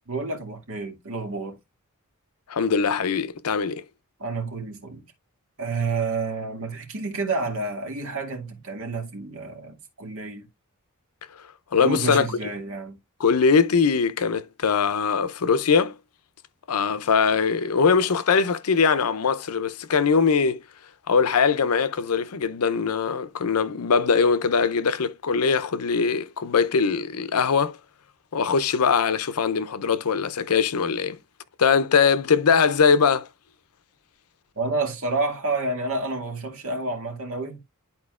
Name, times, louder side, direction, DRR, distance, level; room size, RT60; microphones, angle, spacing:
voice 1, 0.1-1.6 4.2-5.1 5.6-10.5 11.8-13.0 34.6-37.6, right 3 dB, 65° right, 2.1 m, -29 dB
voice 2, 2.5-3.8 11.7-12.3 13.2-15.9 16.7-20.6 21.1-27.8 28.3-31.2 31.6-33.3, left 5 dB, 85° left, 0.6 m, -21 dB
11.0 x 4.3 x 2.4 m
head